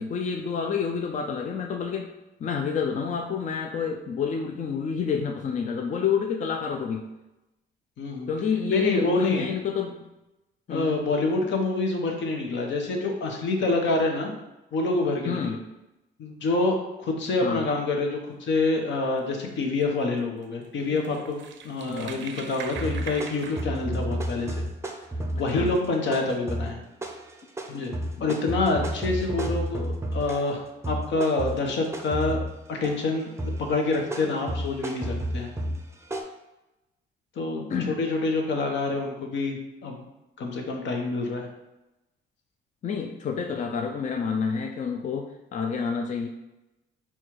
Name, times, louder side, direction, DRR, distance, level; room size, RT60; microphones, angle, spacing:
voice 1, 0.0-2.1 2.4-7.1 8.3-10.0 10.7-10.9 15.3-15.6 17.4-17.6 20.9-21.0 21.9-22.1 25.5-25.7 37.7-38.0 42.8-46.3, left 6 dB, 40° left, 3 dB, 0.4 m, -28 dB
voice 2, 8.0-8.3 8.7-9.5 10.7-14.3 14.7-15.6 16.2-24.6 25.3-26.8 27.7-27.9 28.2-32.4 32.7-35.5 37.4-40.0 40.4-41.5, left 3 dB, 70° left, 2 dB, 0.9 m, -27 dB
sound 1, 19.6-19.8 20.4-20.5 20.8-23.6, right 6 dB, 70° right, 0.5 m, -40 dB
sound 2, 22.8-30.6 30.8-33.1 33.4-36.2, right 1 dB, 15° right, 0.6 m, -32 dB
4.3 x 2.3 x 4.6 m, 0.96 s
cardioid pair, 90°, 20 cm